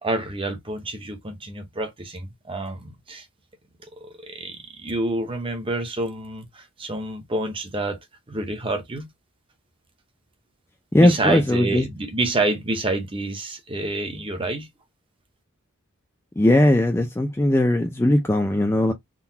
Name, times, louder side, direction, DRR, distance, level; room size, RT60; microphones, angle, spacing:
voice 1, 0.0-3.2 4.0-8.0 8.3-9.1 11.0-14.7, right 2 dB, 25° right, 0.7 m, -28 dB
voice 2, 10.9-11.9 16.4-18.9, left 1 dB, 10° left, 0.3 m, -19 dB
3.8 x 2.3 x 2.7 m
head